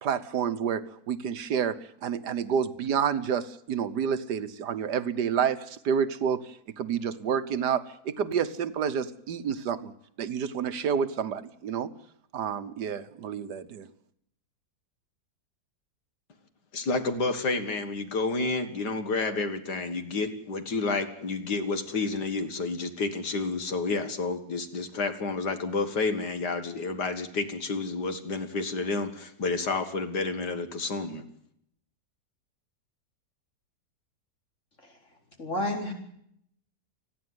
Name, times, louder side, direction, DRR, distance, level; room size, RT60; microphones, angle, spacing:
voice 1, 0.0-9.9 10.2-11.9 12.3-13.9, right 7 dB, 75° right, 12 dB, 1.7 m, -29 dB
voice 2, 16.7-31.2, left 3 dB, 75° left, 9 dB, 2.4 m, -30 dB
voice 3, 35.4-35.9, left 1 dB, 45° left, 2 dB, 4.7 m, -29 dB
29.5 x 10.5 x 9.7 m, 0.71 s
omnidirectional pair, 1.8 m